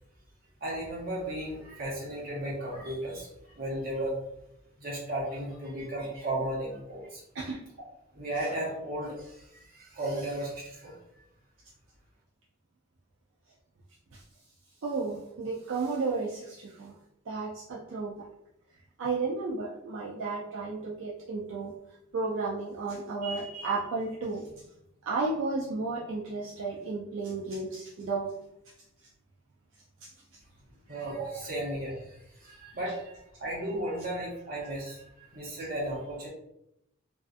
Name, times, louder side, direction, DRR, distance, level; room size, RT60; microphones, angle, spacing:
voice 1, 0.6-4.2 4.8-7.2 8.1-11.0 30.9-36.3, right 1 dB, 50° right, -5 dB, 1.0 m, -35 dB
voice 2, 14.8-16.9 17.3-18.1 19.0-21.7 22.1-24.4 25.1-28.3 30.0-30.1, right 3 dB, 70° right, -4 dB, 0.4 m, -33 dB
2.5 x 2.3 x 2.3 m, 0.81 s
head